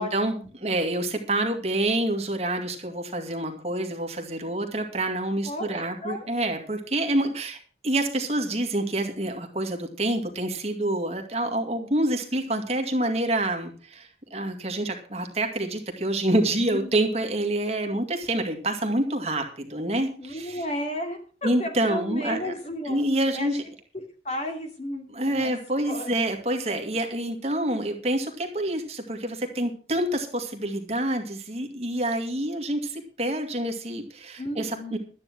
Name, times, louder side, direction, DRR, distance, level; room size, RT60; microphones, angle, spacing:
voice 1, 0.0-20.6 21.4-22.5 22.9-23.6 25.1-35.0, right 1 dB, 35° right, 4 dB, 2.2 m, -27 dB
voice 2, 5.4-6.3 16.7-16.9 20.2-23.1 23.3-23.6 23.9-25.6 25.9-26.2 34.4-35.0, left 1 dB, 40° left, 4 dB, 3.1 m, -33 dB
13.0 x 9.6 x 6.1 m, 0.39 s
head